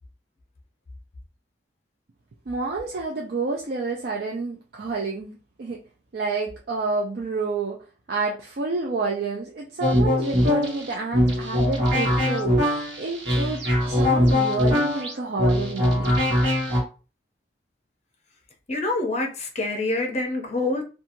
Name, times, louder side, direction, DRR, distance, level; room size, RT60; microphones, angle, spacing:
voice 1, 2.5-5.8 6.1-7.8 8.1-16.1, right 3 dB, 55° right, 0.4 m, -29 dB
sound 1, 9.8-16.8, left 1 dB, 70° right, 1.1 m, -21 dB
voice 2, 18.7-20.8, left 2 dB, 35° left, 0.7 m, -26 dB
2.8 x 2.3 x 2.6 m
head